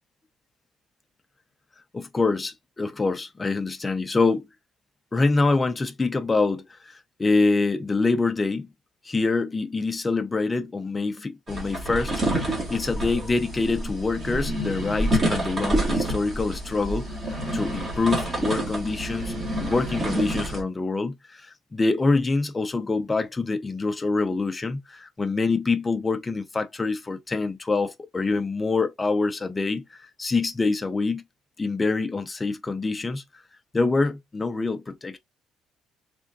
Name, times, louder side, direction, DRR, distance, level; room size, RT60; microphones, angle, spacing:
voice 1, 1.9-4.5 5.1-8.7 9.0-17.1 17.5-19.3 19.6-31.2 31.6-33.2 33.7-35.2, left 3 dB, 15° left, 0.5 m, -25 dB
sound 1, 11.5-20.6, right 1 dB, 30° right, 1.7 m, -28 dB
3.6 x 3.4 x 2.6 m
cardioid pair, 160°, 0 cm